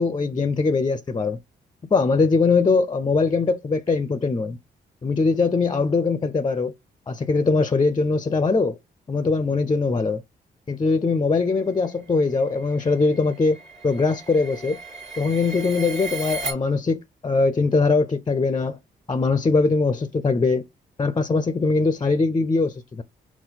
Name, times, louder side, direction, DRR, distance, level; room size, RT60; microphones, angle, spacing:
voice 1, 0.0-1.4 1.9-4.6 5.0-6.7 7.1-8.8 9.1-10.2 10.7-13.6 13.8-14.8 15.2-18.8 19.1-20.6 21.0-23.0, left 4 dB, 20° left, 0.4 m, -21 dB
sound 1, 11.8-16.5, right 4 dB, 70° right, 1.5 m, -36 dB
3.9 x 2.3 x 3.9 m
supercardioid pair, 45°, 20 cm